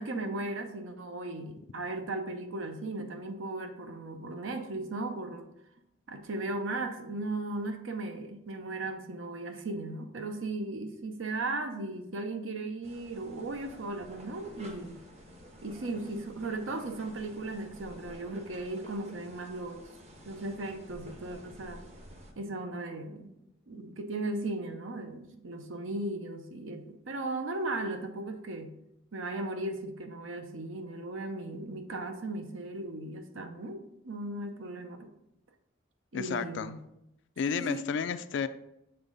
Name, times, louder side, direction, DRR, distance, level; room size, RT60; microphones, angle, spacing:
voice 1, 0.0-5.5 6.1-15.0 15.6-19.9 20.2-21.8 22.4-23.3 23.7-28.8 29.1-35.1 36.1-36.8 37.5-37.8, right 2 dB, 75° right, 6 dB, 0.7 m, -37 dB
sound 1, 12.8-22.3, equal, 35° right, 0.8 m, -50 dB
voice 2, 36.1-36.7 37.4-38.5, left 6 dB, 65° left, 11 dB, 0.3 m, -32 dB
6.9 x 3.6 x 3.9 m, 0.83 s
head